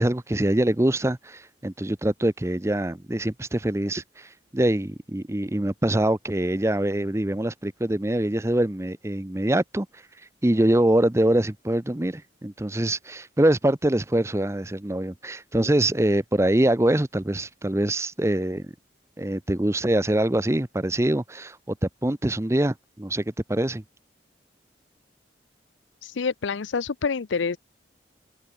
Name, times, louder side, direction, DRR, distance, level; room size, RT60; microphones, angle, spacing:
voice 1, 0.0-10.0 10.4-18.7 19.2-21.8 22.0-23.8, right 1 dB, 15° right, 0.6 m, -24 dB
voice 2, 26.0-27.6, left 5 dB, 85° left, 0.6 m, -27 dB
head